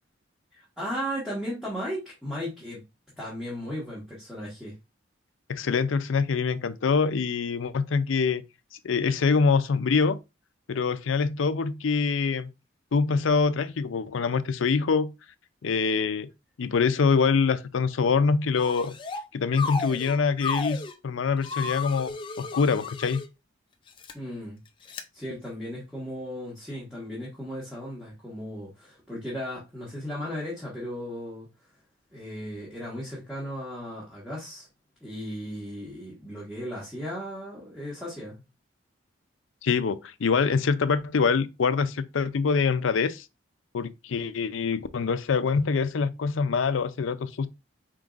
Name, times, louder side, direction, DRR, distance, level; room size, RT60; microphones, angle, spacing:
voice 1, 0.5-2.8 3.2-4.8 24.1-24.6 25.1-31.5 32.1-34.7 35.0-38.4, equal, ahead, 1.5 m, -36 dB
voice 2, 5.5-8.4 8.8-10.2 10.7-12.5 12.9-15.1 15.6-16.3 16.6-18.9 19.3-23.2 39.6-43.2 43.7-47.5, left 5 dB, 85° left, 0.5 m, -25 dB
sound 1, 18.6-19.2 19.5-20.9 21.4-23.3 23.9-24.1 24.9-25.0, left 4 dB, 25° left, 0.4 m, -33 dB
4.6 x 3.7 x 2.5 m
head